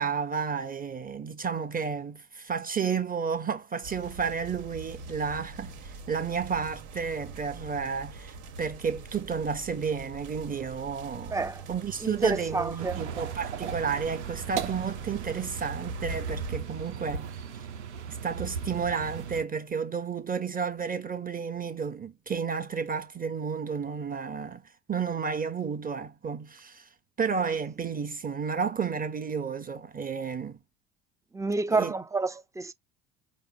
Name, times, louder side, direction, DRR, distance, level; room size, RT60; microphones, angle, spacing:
voice 1, 0.0-11.4 11.7-17.3 18.1-24.6 24.9-26.9 27.2-30.6 31.7-31.9, right 6 dB, 25° right, 1.2 m, -32 dB
sound 1, 3.8-16.6, right 4 dB, 60° right, 1.5 m, -44 dB
voice 2, 11.3-11.6 12.0-13.0 31.3-32.7, right 3 dB, 10° right, 0.4 m, -29 dB
sound 2, 12.8-19.4, right 6 dB, 85° right, 0.9 m, -36 dB
4.7 x 2.0 x 3.9 m
hypercardioid pair, 70°, 34 cm